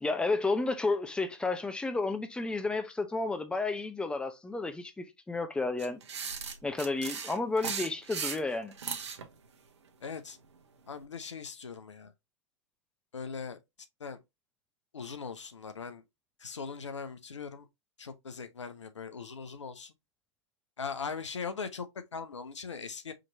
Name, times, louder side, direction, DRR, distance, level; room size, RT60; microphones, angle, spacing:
voice 1, 0.0-6.0 6.6-8.7, left 3 dB, 5° left, 0.7 m, -31 dB
sound 1, 5.8-9.3, right 6 dB, 70° right, 0.9 m, -37 dB
voice 2, 10.0-10.4 10.9-12.1 13.1-13.6 14.0-14.2 14.9-16.0 16.4-17.7 18.0-19.9 20.8-23.1, left 5 dB, 85° left, 0.7 m, -40 dB
5.0 x 3.0 x 2.7 m
figure-of-eight pair, 100°, 15 cm